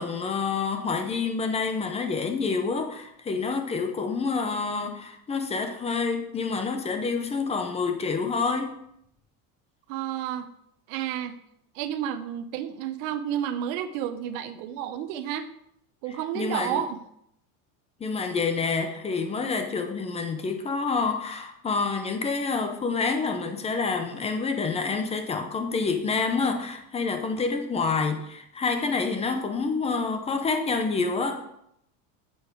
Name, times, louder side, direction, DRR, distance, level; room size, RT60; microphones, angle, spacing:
voice 1, 0.0-8.8 16.3-16.8 18.0-31.4, left 4 dB, 15° left, 6 dB, 0.7 m, -28 dB
voice 2, 9.9-10.5 10.9-11.4 11.7-15.5 16.0-17.0, right 10 dB, 65° right, 11 dB, 0.9 m, -31 dB
8.4 x 7.0 x 4.6 m, 0.76 s
cardioid pair, 160°, 42 cm